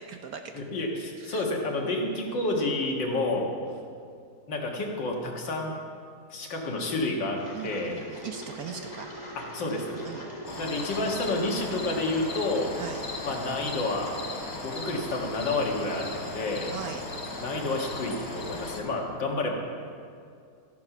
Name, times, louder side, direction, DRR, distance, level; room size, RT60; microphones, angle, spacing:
voice 1, 0.0-0.5 1.2-1.4 7.5-9.1 10.0-10.6 12.8-13.0 16.7-17.0, right 7 dB, 65° right, 5 dB, 1.0 m, -39 dB
voice 2, 0.5-3.5 4.5-5.7 6.3-8.0 9.5-10.0 10.6-12.7 13.2-14.1 14.6-16.7 17.4-19.5, left 2 dB, 85° left, 0 dB, 2.3 m, -29 dB
Engine, 7.4-15.1, equal, 25° left, 2.0 m, -44 dB
sound 1, 10.4-18.8, left 2 dB, 65° left, 2.7 m, -39 dB
sound 2, 10.4-18.8, left 4 dB, 40° left, 1.3 m, -42 dB
14.0 x 9.6 x 6.0 m, 2.3 s
omnidirectional pair, 1.9 m